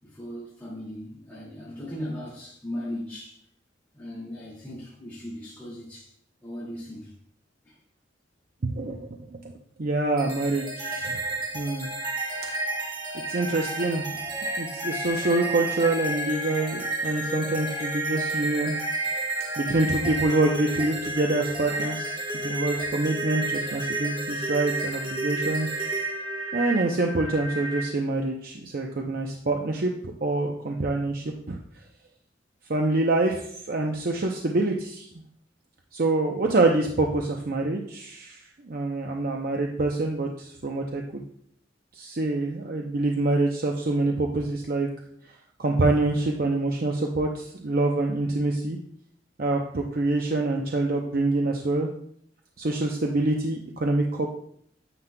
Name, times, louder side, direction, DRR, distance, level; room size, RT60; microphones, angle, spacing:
voice 1, 0.0-3.4 3.9-6.1 6.4-7.1 7.7-7.8, left 1 dB, 10° left, -9 dB, 2.1 m, -37 dB
voice 2, 8.6-9.5 9.8-11.2 11.5-11.9 13.3-14.1 14.6-18.7 19.6-22.2 22.4-25.7 26.5-31.6 32.7-35.1 35.9-41.2 41.9-44.9 45.6-48.8 49.4-51.9 52.6-54.3, right 2 dB, 50° right, 1 dB, 0.6 m, -26 dB
sound 1, 10.2-27.8, right 2 dB, 25° right, 1.2 m, -31 dB
9.6 x 7.3 x 2.2 m, 0.67 s
head